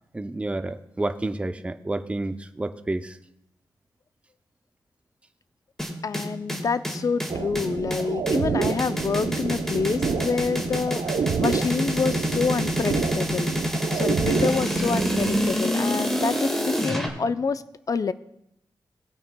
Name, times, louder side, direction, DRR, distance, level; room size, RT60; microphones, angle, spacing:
voice 1, 0.1-3.2, right 2 dB, 15° right, 9 dB, 0.5 m, -30 dB
sound 1, 5.8-17.1, equal, 5° left, 1.7 m, -27 dB
voice 2, 6.0-13.5 13.9-17.6 17.9-18.1, left 5 dB, 45° left, 13 dB, 0.4 m, -27 dB
sound 2, 7.3-15.5, right 6 dB, 90° right, 0.6 m, -29 dB
18.5 x 9.0 x 2.2 m, 0.79 s
wide cardioid pair, 115°, 8 cm